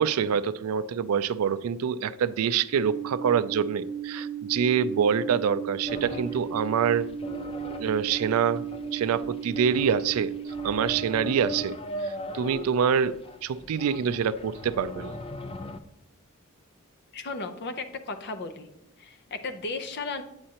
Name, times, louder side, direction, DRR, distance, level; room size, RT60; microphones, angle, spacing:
voice 1, 0.0-7.1 7.7-8.6 8.9-10.3 10.6-11.8 12.0-15.1, right 7 dB, 70° right, 15 dB, 0.3 m, -26 dB
Alarm, 2.7-11.6, right 7 dB, 15° right, 1.1 m, -35 dB
sound 1, 5.9-15.8, left 1 dB, 25° left, 0.4 m, -40 dB
voice 2, 17.1-18.7 19.0-20.2, left 3 dB, 50° left, 7 dB, 0.7 m, -35 dB
8.7 x 7.5 x 2.8 m, 0.81 s
head